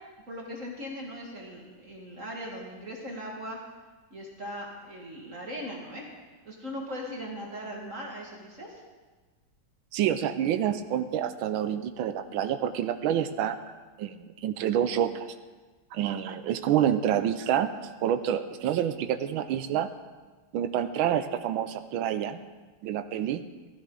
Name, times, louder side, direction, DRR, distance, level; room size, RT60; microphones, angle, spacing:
voice 1, 0.3-3.6 4.1-6.1 6.4-8.8, equal, 40° right, -2 dB, 2.1 m, -39 dB
voice 2, 9.9-13.6 14.0-15.3 15.9-17.7 18.0-19.9 20.5-22.4 22.8-23.4, right 10 dB, 90° right, 9 dB, 1.4 m, -27 dB
15.5 x 13.5 x 3.8 m, 1.3 s
omnidirectional pair, 2.2 m